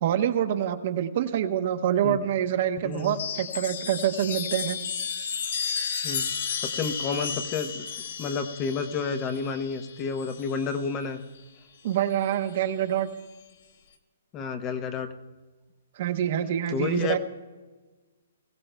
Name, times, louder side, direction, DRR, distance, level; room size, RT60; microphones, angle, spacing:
voice 1, 0.0-4.8 11.8-13.1 16.0-17.2, right 10 dB, 45° right, 8 dB, 0.9 m, -26 dB
voice 2, 2.8-3.1 6.0-6.2 6.7-7.9 8.2-11.2 14.3-15.1 16.7-17.2, left 5 dB, 20° left, 8 dB, 0.7 m, -30 dB
Chime, 2.9-10.8 12.0-12.6, left 6 dB, 60° left, 1.3 m, -33 dB
21.0 x 16.0 x 2.2 m, 1.3 s
hypercardioid pair, 165°, 0 cm